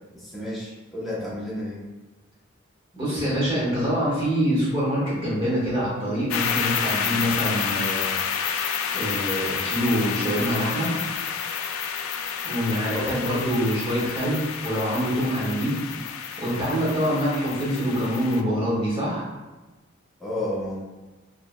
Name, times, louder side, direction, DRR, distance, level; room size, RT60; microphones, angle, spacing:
voice 1, 0.1-1.9 12.8-13.1 20.2-20.8, left 1 dB, ahead, -7 dB, 0.8 m, -31 dB
voice 2, 2.9-8.1 8.9-10.9 12.4-15.8 16.4-19.3, equal, 25° right, -8 dB, 1.5 m, -25 dB
sound 1, 6.3-18.4, left 7 dB, 75° left, 0.3 m, -29 dB
4.6 x 3.3 x 2.2 m, 1.2 s
head